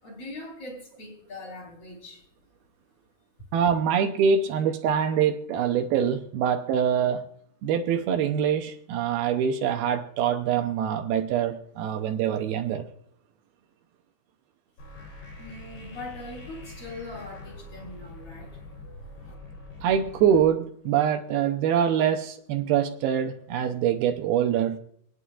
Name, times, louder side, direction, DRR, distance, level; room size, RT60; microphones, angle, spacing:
voice 1, 0.0-2.2 15.4-18.6 19.2-19.3, left 2 dB, 35° left, -2 dB, 4.8 m, -41 dB
voice 2, 3.5-7.2 7.6-12.9 19.8-24.8, right 8 dB, 80° right, 6 dB, 2.7 m, -24 dB
sound 1, 14.8-20.4, left 2 dB, 75° left, 5.7 m, -44 dB
27.0 x 9.8 x 2.5 m, 0.67 s
omnidirectional pair, 4.5 m